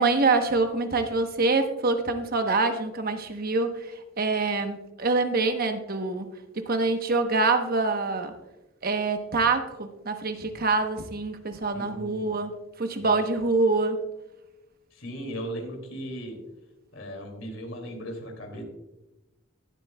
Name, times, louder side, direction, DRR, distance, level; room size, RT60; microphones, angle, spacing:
voice 1, 0.0-3.8 4.2-8.3 8.8-12.5 12.8-14.0, right 3 dB, 50° right, 7 dB, 1.0 m, -25 dB
voice 2, 11.7-12.3 13.0-13.1 14.9-16.4 16.9-18.6, equal, 75° left, 3 dB, 2.5 m, -37 dB
19.5 x 7.7 x 2.3 m, 0.97 s
head